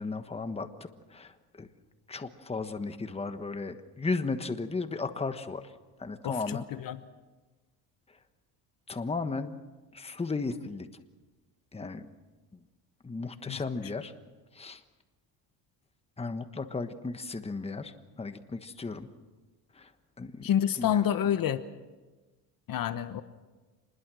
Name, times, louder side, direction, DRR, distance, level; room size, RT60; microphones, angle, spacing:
voice 1, 0.0-1.7 2.1-5.6 6.0-6.6 8.9-9.5 9.9-10.9 11.7-12.1 13.0-14.1 14.5-14.8 16.2-19.1 19.7-19.9 20.2-20.5 20.8-21.1, left 3 dB, 15° left, 9 dB, 1.3 m, -35 dB
voice 2, 6.2-7.0 13.5-13.6 20.4-21.6 22.7-23.2, left 10 dB, 50° left, 11 dB, 1.1 m, -28 dB
26.0 x 21.0 x 6.3 m, 1.2 s
cardioid pair, 120°, 44 cm